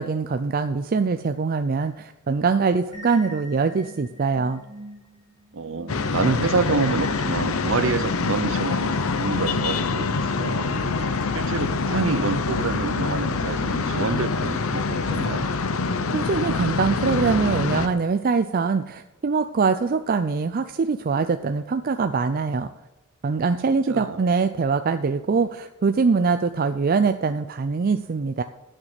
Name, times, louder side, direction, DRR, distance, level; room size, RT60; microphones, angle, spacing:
voice 1, 0.0-4.6 16.1-22.7 23.2-28.4, right 4 dB, 40° right, 9 dB, 0.4 m, -23 dB
sound 1, 2.9-14.6, right 1 dB, 15° right, 1.8 m, -45 dB
voice 2, 5.5-10.7 11.3-15.5 23.9-24.2, right 3 dB, 60° right, 12 dB, 0.7 m, -27 dB
sound 2, 5.9-17.9, left 4 dB, 65° left, 0.7 m, -25 dB
8.9 x 6.5 x 7.5 m, 1.1 s
head